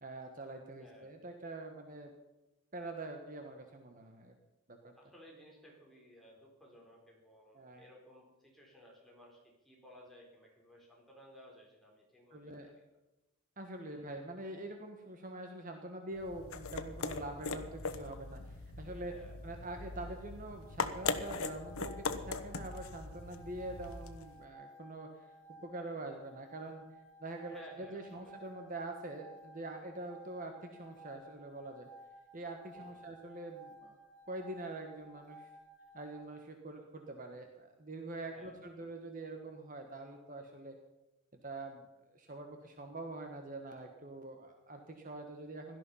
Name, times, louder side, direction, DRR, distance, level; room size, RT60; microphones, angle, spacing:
voice 1, 0.0-2.1 2.7-4.3 4.7-4.9 7.5-7.9 12.3-12.7 13.6-19.1 19.4-25.3 25.6-26.8 27.2-31.9 32.3-34.0 34.3-35.5 35.9-40.7 41.4-41.8 42.1-45.8, right 2 dB, 40° right, 4 dB, 1.4 m, -45 dB
voice 2, 0.8-1.1 5.0-12.8 13.8-14.1 19.1-19.3 27.4-28.4 32.7-33.1 38.2-38.7, equal, ahead, -3 dB, 4.3 m, -58 dB
sound 1, 16.1-24.4, left 4 dB, 90° left, 1.1 m, -40 dB
sound 2, 20.5-36.3, right 1 dB, 65° left, 2.4 m, -56 dB
17.0 x 12.5 x 5.6 m, 1.0 s
head